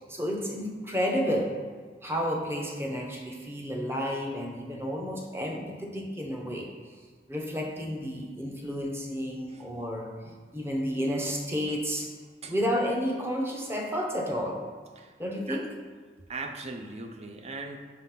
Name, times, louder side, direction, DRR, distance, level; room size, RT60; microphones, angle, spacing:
voice 1, 0.0-1.5 2.0-6.7 7.3-10.1 10.5-12.1 12.5-14.6 15.2-15.7, equal, 15° right, 0 dB, 0.9 m, -31 dB
voice 2, 16.3-17.8, right 3 dB, 40° right, 5 dB, 0.6 m, -39 dB
5.7 x 3.8 x 5.8 m, 1.5 s
head